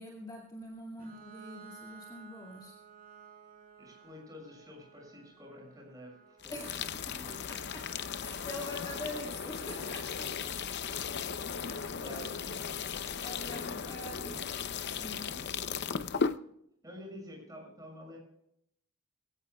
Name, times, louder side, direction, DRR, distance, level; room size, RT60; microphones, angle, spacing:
voice 1, 0.0-2.8 6.5-10.3 11.5-12.9 13.2-14.4 14.9-15.3, left 1 dB, 15° left, -2 dB, 2.2 m, -45 dB
Bowed string instrument, 1.0-6.6, right 6 dB, 40° right, 5.3 m, -54 dB
voice 2, 3.8-6.8 7.1-7.8 10.3-10.4 12.0-13.0 13.9-14.4 15.2-15.5 16.8-18.2, left 1 dB, 15° right, -1 dB, 6.8 m, -50 dB
sound 1, 6.4-16.4, left 6 dB, 50° left, 0.7 m, -36 dB
21.5 x 17.0 x 2.3 m, 0.75 s
head